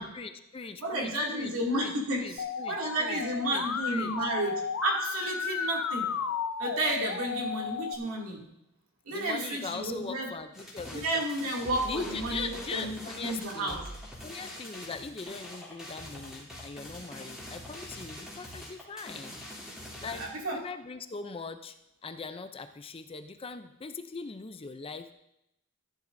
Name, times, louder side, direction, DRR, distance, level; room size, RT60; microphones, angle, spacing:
voice 1, 0.0-3.7 3.9-4.3 9.1-11.2 11.8-13.8 14.2-19.4 20.0-20.3 20.5-21.8 22.0-25.1, left 4 dB, 25° left, 9 dB, 0.5 m, -41 dB
voice 2, 0.8-6.1 6.6-8.4 9.1-10.3 10.9-13.8 20.1-20.6, right 1 dB, 70° right, -2 dB, 2.5 m, -32 dB
Musical instrument, 2.4-7.9, left 6 dB, 75° left, 0.6 m, -33 dB
sound 1, 10.5-20.3, left 1 dB, 5° right, 2.9 m, -44 dB
14.0 x 10.5 x 2.6 m, 0.81 s
head